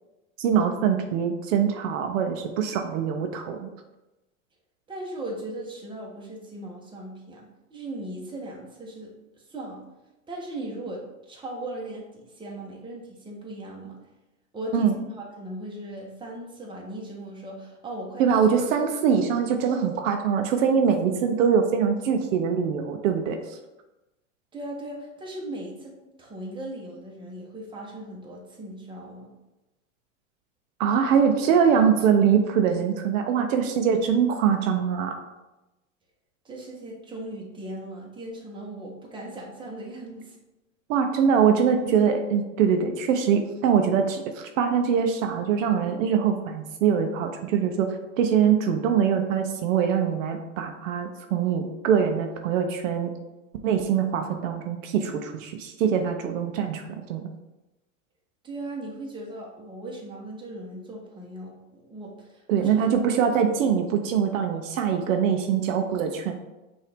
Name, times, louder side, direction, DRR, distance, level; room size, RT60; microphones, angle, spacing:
voice 1, 0.4-3.7 14.7-14.9 18.2-23.6 30.8-35.1 40.9-53.1 53.6-56.8 57.1-57.3 62.5-66.3, right 7 dB, 75° right, 5 dB, 0.7 m, -23 dB
voice 2, 4.9-9.8 10.3-14.0 14.5-18.4 24.5-29.3 36.4-40.4 58.4-62.7, right 1 dB, 10° right, -2 dB, 1.1 m, -38 dB
5.6 x 2.7 x 3.5 m, 1.0 s
hypercardioid pair, 115°, 40 cm